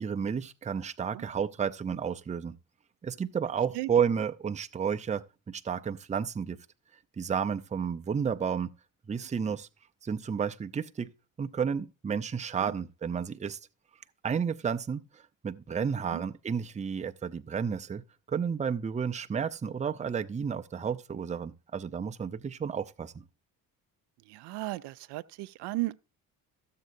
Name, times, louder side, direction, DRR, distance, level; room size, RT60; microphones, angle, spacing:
voice 1, 0.0-2.6 3.0-6.6 7.2-8.7 9.1-9.7 10.0-11.1 11.4-13.6 14.2-18.0 18.3-23.1, right 7 dB, 15° right, 0.5 m, -31 dB
voice 2, 24.3-25.9, right 19 dB, 70° right, 0.5 m, -35 dB
12.5 x 7.5 x 2.6 m
supercardioid pair, 60°, 42 cm